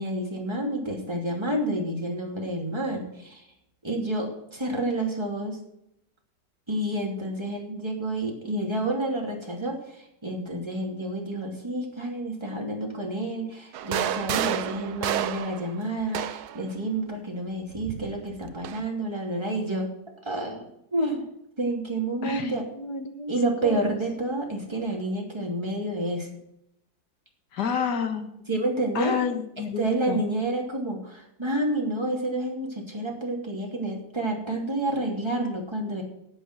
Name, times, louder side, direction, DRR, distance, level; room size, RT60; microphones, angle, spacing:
voice 1, 0.0-3.5 3.8-5.6 6.7-19.9 20.2-20.6 20.9-21.2 21.6-22.7 23.3-26.3 28.5-29.2 29.8-36.0, right 1 dB, 15° right, -1 dB, 2.9 m, -29 dB
sound 1, 13.7-16.6 17.7-18.8, right 10 dB, 70° right, 1.2 m, -30 dB
voice 2, 22.2-23.9 27.5-28.3 29.0-30.2, left 6 dB, 80° left, 7 dB, 2.0 m, -30 dB
11.0 x 8.3 x 6.3 m, 0.81 s
omnidirectional pair, 1.8 m